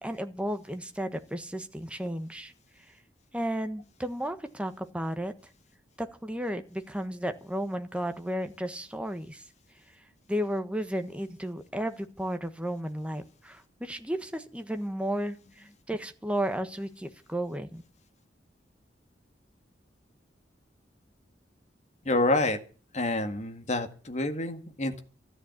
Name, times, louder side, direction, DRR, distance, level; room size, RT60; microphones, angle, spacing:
voice 1, 0.0-2.5 2.9-3.0 3.3-5.3 6.0-9.4 10.3-17.8, equal, 5° right, 8 dB, 1.3 m, -33 dB
voice 2, 22.1-22.6 22.9-25.0, left 2 dB, 40° left, 6 dB, 1.9 m, -28 dB
13.5 x 9.9 x 8.3 m, 0.39 s
head